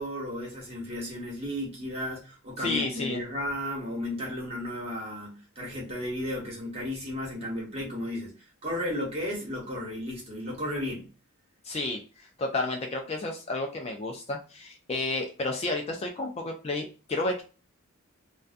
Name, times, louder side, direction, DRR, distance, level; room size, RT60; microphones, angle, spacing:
voice 1, 0.0-8.3 8.6-11.1, left 1 dB, 30° right, -2 dB, 1.0 m, -34 dB
voice 2, 2.6-3.2 11.6-17.4, left 2 dB, 30° left, 2 dB, 0.3 m, -31 dB
2.5 x 2.2 x 2.4 m, 0.33 s
head